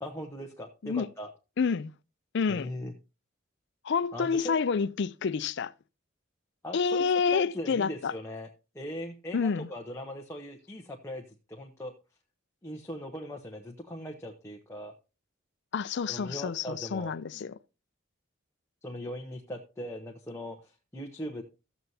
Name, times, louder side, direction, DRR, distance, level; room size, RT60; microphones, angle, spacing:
voice 1, 0.0-1.3 2.5-2.9 4.1-4.6 6.6-8.5 8.7-12.0 12.6-14.9 16.1-17.1 18.8-21.4, left 1 dB, 15° left, 0.9 m, -40 dB
voice 2, 1.6-1.9 2.3-2.7 3.8-5.7 6.7-8.1 9.3-9.7 15.7-17.6, left 5 dB, 55° left, 0.4 m, -28 dB
14.0 x 7.9 x 2.7 m
head